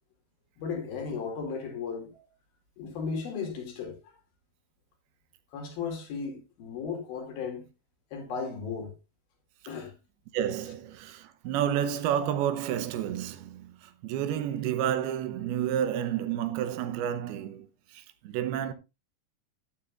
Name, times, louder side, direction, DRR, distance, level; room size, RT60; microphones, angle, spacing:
voice 1, 0.6-2.2 2.8-4.0 5.5-7.7 8.1-8.9 9.7-9.9, left 5 dB, 70° left, 4.3 m, -35 dB
voice 2, 10.3-18.7, right 10 dB, 85° right, 2.9 m, -30 dB
14.0 x 9.1 x 2.5 m
omnidirectional pair, 4.4 m